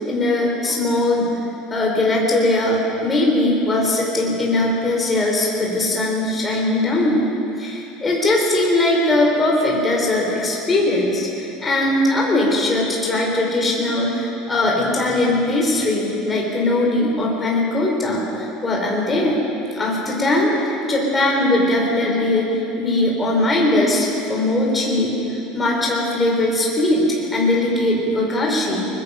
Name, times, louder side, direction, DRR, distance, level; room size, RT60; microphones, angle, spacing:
voice 1, 0.0-1.3 1.7-7.3 7.6-19.4 19.7-28.9, left 1 dB, 15° left, -2 dB, 3.7 m, -20 dB
24.0 x 20.5 x 5.5 m, 2.9 s
cardioid pair, 175°, 0 cm